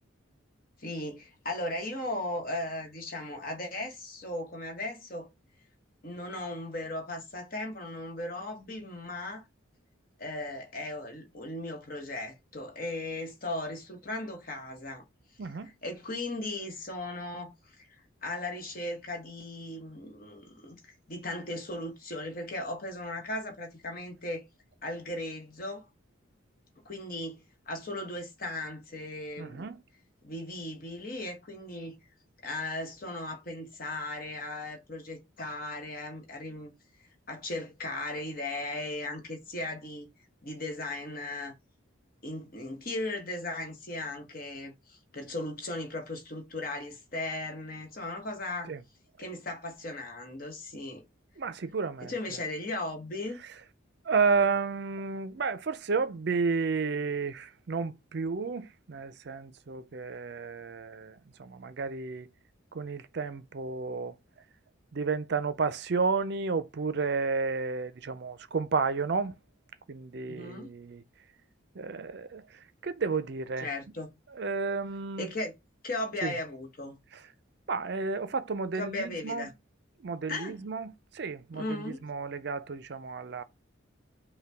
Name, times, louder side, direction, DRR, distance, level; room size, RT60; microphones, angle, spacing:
voice 1, 0.8-5.3 6.0-9.4 10.2-15.0 15.8-24.4 24.8-25.8 26.8-29.7 30.2-32.0 32.4-36.7 37.3-40.1 40.4-41.5 42.2-48.7 49.2-51.0 52.0-53.4 70.3-70.7 73.6-74.1 75.2-75.5 75.8-77.0 78.7-79.5 80.3-80.6 81.5-82.0, left 2 dB, 45° left, 1.1 m, -37 dB
voice 2, 15.4-15.7 29.4-29.8 48.7-48.8 51.4-52.2 54.0-62.3 62.7-64.2 64.9-69.4 69.9-71.0 71.7-73.7 74.3-75.3 76.2-76.3 77.1-77.2 77.7-79.5 80.0-83.4, right 4 dB, 50° right, 0.5 m, -32 dB
5.5 x 2.2 x 3.4 m
head